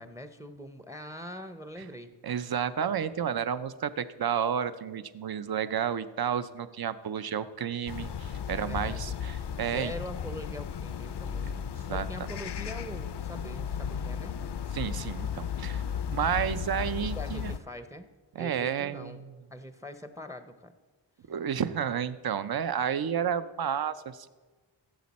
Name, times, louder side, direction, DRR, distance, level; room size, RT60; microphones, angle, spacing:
voice 1, 0.0-2.1 8.5-9.1 9.5-14.3 17.1-18.1 18.3-19.2 19.5-20.7, equal, 5° right, 10 dB, 0.6 m, -43 dB
voice 2, 2.2-9.9 11.5-11.6 11.9-12.0 14.7-15.8 16.1-17.5 18.3-19.3 21.3-24.3, right 8 dB, 55° right, 14 dB, 0.6 m, -31 dB
sound 1, 7.9-17.6, left 7 dB, 60° left, 0.5 m, -35 dB
15.5 x 7.5 x 4.2 m, 1.3 s
wide cardioid pair, 70°, 46 cm